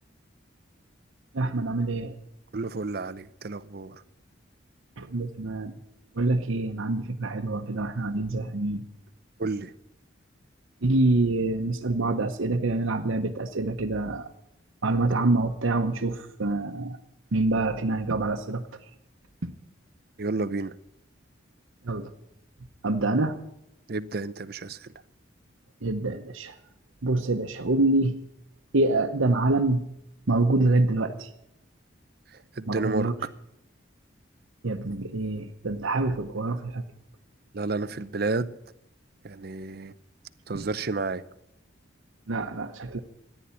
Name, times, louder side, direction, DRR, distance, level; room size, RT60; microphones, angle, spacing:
voice 1, 1.3-2.2 5.0-5.7 6.1-8.8 10.8-14.3 14.8-17.0 17.3-18.6 19.4-19.5 21.8-22.1 22.8-23.4 25.8-26.5 27.0-28.2 28.7-29.8 30.3-31.3 32.7-33.1 34.6-36.8 40.5-40.6 42.3-43.0, right 2 dB, 90° right, 0.9 m, -26 dB
voice 2, 2.5-4.0 9.4-9.7 20.2-20.7 23.9-24.9 32.3-33.1 37.5-38.6 39.2-39.9 40.5-41.2, right 3 dB, 50° right, 0.6 m, -31 dB
14.5 x 10.0 x 8.4 m
head